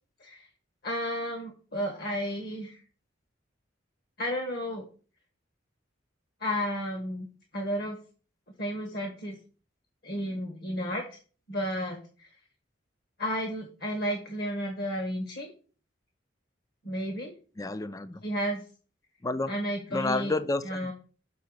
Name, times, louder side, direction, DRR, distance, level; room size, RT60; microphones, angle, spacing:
voice 1, 0.8-2.8 4.2-4.8 6.4-7.3 7.5-8.0 8.6-9.4 10.0-11.2 11.5-12.3 13.2-15.5 16.8-17.3 18.2-18.6 19.5-20.3 20.6-20.9, equal, 55° left, 1.4 m, -32 dB
voice 2, 17.6-18.2 19.2-19.5 19.9-20.9, left 2 dB, 20° left, 0.4 m, -30 dB
6.9 x 3.9 x 6.5 m
head